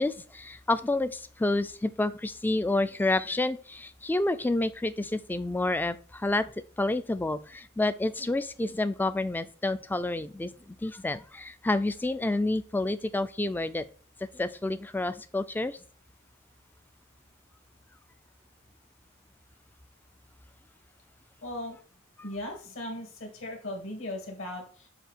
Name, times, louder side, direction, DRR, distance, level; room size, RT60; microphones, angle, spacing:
voice 1, 0.0-6.5 6.8-13.8 14.3-15.8, left 2 dB, 10° left, 12 dB, 0.3 m, -29 dB
voice 2, 21.4-21.8 22.2-24.9, left 1 dB, 70° left, 2 dB, 2.1 m, -38 dB
7.9 x 2.7 x 4.4 m, 0.42 s
head